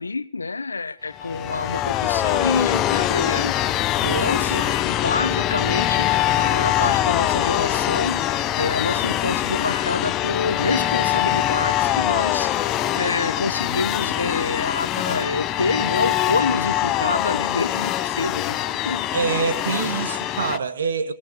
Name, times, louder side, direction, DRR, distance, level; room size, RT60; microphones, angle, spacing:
voice 1, 0.0-3.6 4.0-18.6 18.8-19.1, left 4 dB, 85° left, 0.9 m, -27 dB
sound 1, 1.2-20.6, left 12 dB, 25° left, 0.7 m, -23 dB
voice 2, 4.0-4.8 19.1-21.1, right 5 dB, 65° right, 1.5 m, -26 dB
25.5 x 18.0 x 3.0 m
figure-of-eight pair, 125°, 0 cm